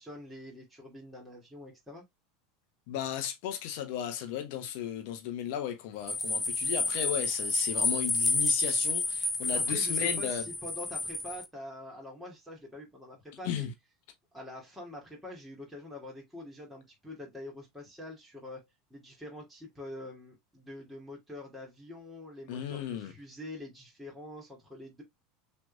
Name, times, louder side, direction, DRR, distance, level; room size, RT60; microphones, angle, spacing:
voice 1, 0.0-2.1 9.5-13.7 14.3-18.6 18.9-25.0, left 1 dB, 5° right, 2.5 m, -45 dB
voice 2, 2.9-10.4 13.4-13.7 22.5-23.1, left 9 dB, 55° left, 1.1 m, -35 dB
sound 1, 6.1-11.5, left 3 dB, 10° left, 0.7 m, -30 dB
6.1 x 3.4 x 2.4 m
figure-of-eight pair, 75°, 0 cm